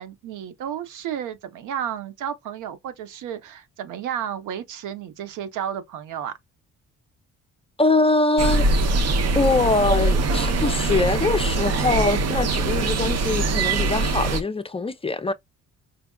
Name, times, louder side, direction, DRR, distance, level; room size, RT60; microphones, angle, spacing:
voice 1, 0.0-6.4, right 9 dB, 90° right, 0.9 m, -32 dB
voice 2, 7.8-8.9 9.3-15.3, left 3 dB, 20° left, 0.5 m, -23 dB
sound 1, 8.4-14.4, right 3 dB, 55° right, 0.8 m, -22 dB
5.0 x 2.3 x 2.3 m
cardioid pair, 90°, 30 cm